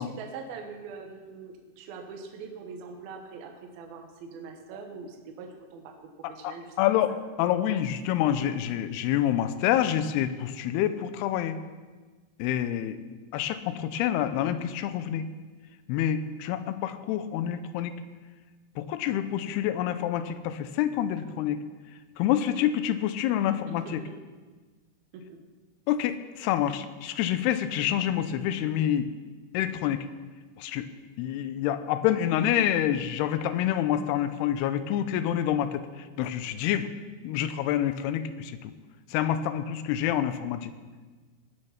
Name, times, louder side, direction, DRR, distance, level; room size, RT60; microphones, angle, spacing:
voice 1, 0.0-5.9 6.3-6.7 23.7-24.2 25.1-25.4, right 5 dB, 75° right, 3 dB, 2.9 m, -42 dB
voice 2, 6.4-7.1 7.4-11.6 12.4-13.0 13.3-15.3 15.9-17.9 18.8-21.6 22.2-24.0 25.9-29.1 29.5-30.1 30.6-30.9 31.2-35.8 36.2-36.9 37.2-38.7 39.1-40.7, left 11 dB, 85° left, 12 dB, 2.7 m, -27 dB
18.5 x 6.5 x 5.8 m, 1.4 s
omnidirectional pair, 4.6 m